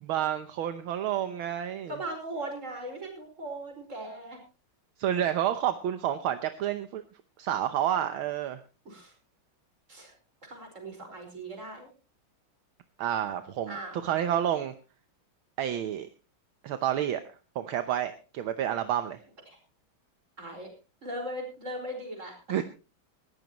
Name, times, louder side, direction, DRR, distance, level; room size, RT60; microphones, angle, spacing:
voice 1, 0.0-1.9 5.0-7.0 7.4-8.6 13.0-13.8 14.0-14.7 15.6-16.1 16.6-17.2 17.5-19.2 22.5-22.6, right 10 dB, 75° right, 9 dB, 1.7 m, -29 dB
voice 2, 1.9-4.4 8.9-9.1 9.9-10.1 10.5-11.9 13.7-14.2 20.4-20.7 21.0-22.6, right 1 dB, 35° right, 3 dB, 5.3 m, -39 dB
19.0 x 15.5 x 3.0 m, 0.33 s
omnidirectional pair, 2.3 m